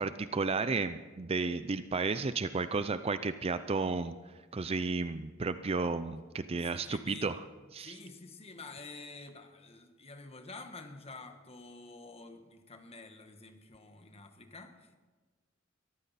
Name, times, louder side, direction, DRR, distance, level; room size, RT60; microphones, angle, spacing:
voice 1, 0.0-4.2 4.5-7.4 7.7-8.0, right 4 dB, 30° right, 0.5 m, -33 dB
voice 2, 6.6-7.4 7.8-14.9, left 3 dB, 30° left, 1.3 m, -49 dB
22.0 x 14.5 x 4.2 m
head